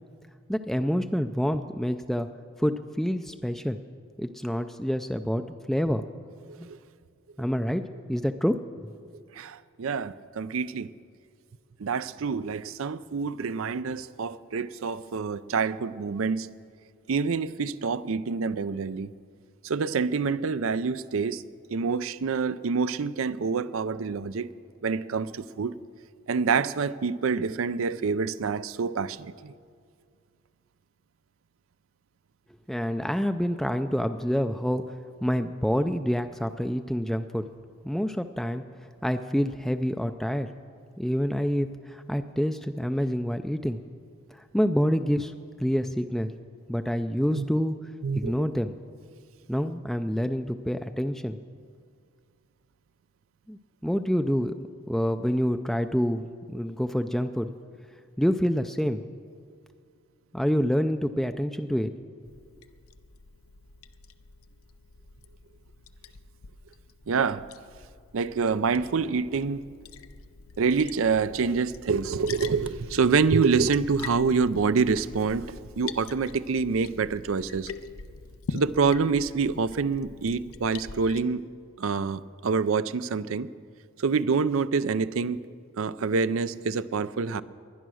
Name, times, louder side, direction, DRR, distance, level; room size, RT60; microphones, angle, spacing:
voice 1, 0.5-2.3 2.6-3.8 4.2-6.0 6.6-6.7 7.4-7.8 8.1-8.6 32.7-34.9 35.2-37.5 37.8-38.6 39.0-40.5 41.0-43.8 44.3-45.3 45.6-46.3 46.7-47.8 48.2-48.7 49.5-51.4 53.5-54.5 54.9-57.5 58.2-59.0 60.3-61.9, equal, ahead, 7 dB, 0.3 m, -27 dB
voice 2, 9.3-10.9 11.8-16.5 17.1-19.1 19.6-21.4 21.7-24.5 24.8-25.7 26.3-29.5 47.3-47.4 48.0-48.3 67.1-67.4 68.1-69.7 70.6-77.7 78.5-81.4 81.8-83.5 84.0-85.4 85.8-87.4, right 5 dB, 75° right, 15 dB, 0.5 m, -26 dB
Liquid, 62.3-81.2, left 4 dB, 85° left, 0.6 m, -44 dB
21.5 x 10.0 x 6.3 m, 2.2 s
head